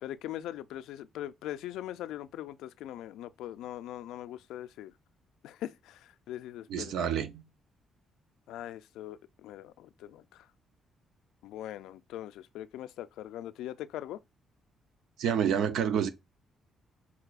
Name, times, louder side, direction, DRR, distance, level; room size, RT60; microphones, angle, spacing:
voice 1, 0.0-4.9 5.4-6.9 8.5-10.5 11.4-14.2, left 12 dB, 90° left, 0.3 m, -41 dB
voice 2, 6.7-7.4 15.2-16.1, right 8 dB, 80° right, 0.6 m, -28 dB
6.1 x 2.8 x 2.4 m
cardioid pair, 90°, 0 cm